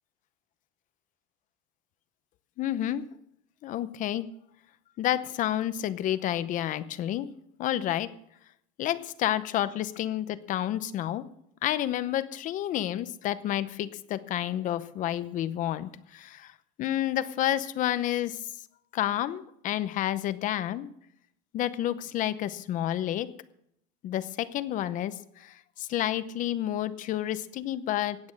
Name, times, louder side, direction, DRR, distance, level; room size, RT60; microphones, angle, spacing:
voice 1, 2.6-3.0 3.6-4.3 5.0-7.3 7.6-8.1 8.8-11.3 11.6-18.4 18.9-20.9 21.5-23.3 24.0-28.2, left 12 dB, 40° left, 14 dB, 0.8 m, -30 dB
16.0 x 9.6 x 6.4 m, 0.74 s
cardioid pair, 165°, 19 cm